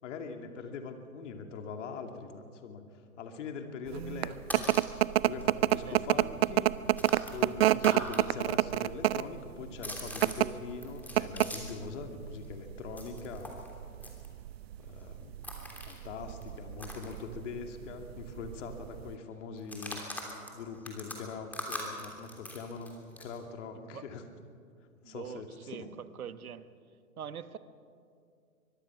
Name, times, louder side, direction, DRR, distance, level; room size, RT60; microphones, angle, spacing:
voice 1, 0.0-2.8 3.2-4.8 5.2-6.7 7.3-13.6 14.8-15.3 15.8-20.0 20.5-24.2 25.0-25.9, left 5 dB, 55° left, 5 dB, 2.6 m, -42 dB
sound 1, 3.9-19.1, right 13 dB, 45° right, 0.6 m, -29 dB
sound 2, 4.2-5.0 5.4-5.5 5.7-8.2 8.5-11.9 12.2-17.8 18.1-18.2 18.5-18.8 19.6-23.4, left 1 dB, 5° left, 3.1 m, -43 dB
voice 2, 23.7-24.1 25.0-26.7 27.2-27.6, right 8 dB, 75° right, 13 dB, 1.3 m, -43 dB
24.0 x 21.5 x 6.0 m, 2.3 s
hypercardioid pair, 125°, 44 cm